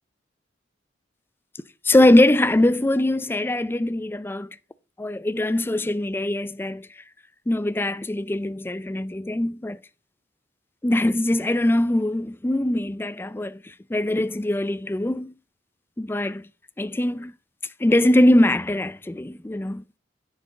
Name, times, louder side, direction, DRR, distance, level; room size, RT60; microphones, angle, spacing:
voice 1, 1.8-4.5 5.0-6.9 7.5-9.8 10.8-15.3 16.0-16.5 16.8-17.3 17.8-19.8, left 1 dB, 10° left, 0.4 m, -22 dB
9.9 x 6.7 x 4.2 m
head